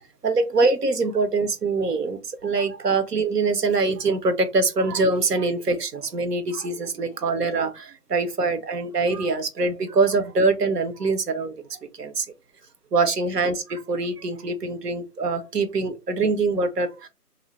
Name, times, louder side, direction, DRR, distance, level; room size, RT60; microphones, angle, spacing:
voice 1, 0.2-12.3 12.9-17.1, right 3 dB, 80° right, 0.8 m, -24 dB
2.7 x 2.0 x 3.0 m
figure-of-eight pair, 180°, 46 cm